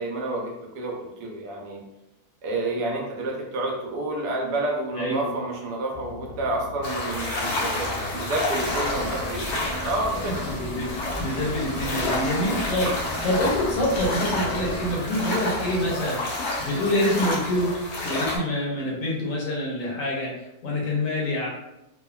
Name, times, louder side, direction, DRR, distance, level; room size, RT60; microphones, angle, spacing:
voice 1, 0.0-1.8 2.4-10.5, right 2 dB, 90° right, 0 dB, 1.3 m, -29 dB
voice 2, 4.9-5.3 10.4-21.5, left 1 dB, 65° left, -3 dB, 1.0 m, -26 dB
sound 1, 5.9-16.1, left 4 dB, 60° right, 0.5 m, -41 dB
sound 2, 6.8-18.4, left 2 dB, 85° left, 1.2 m, -30 dB
sound 3, 8.5-14.9, equal, 40° left, 0.4 m, -37 dB
3.3 x 2.1 x 2.2 m, 0.89 s
omnidirectional pair, 1.7 m